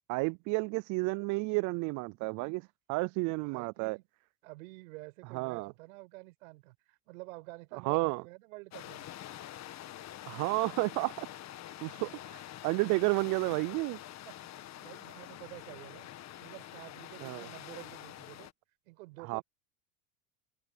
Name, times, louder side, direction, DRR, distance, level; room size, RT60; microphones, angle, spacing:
voice 1, 0.1-2.6 2.9-4.0 5.3-5.7 7.7-8.2 10.3-11.3 11.8-14.0 17.2-17.5 19.3-19.4, right 26 dB, 45° right, 0.4 m, -31 dB
voice 2, 3.4-4.1 4.4-9.1 14.2-14.3 14.8-16.1 16.4-18.5 18.9-19.4, right 23 dB, 75° right, 6.0 m, -49 dB
sound 1, 8.7-18.5, left 13 dB, 40° left, 1.6 m, -46 dB
supercardioid pair, 110°, 41 cm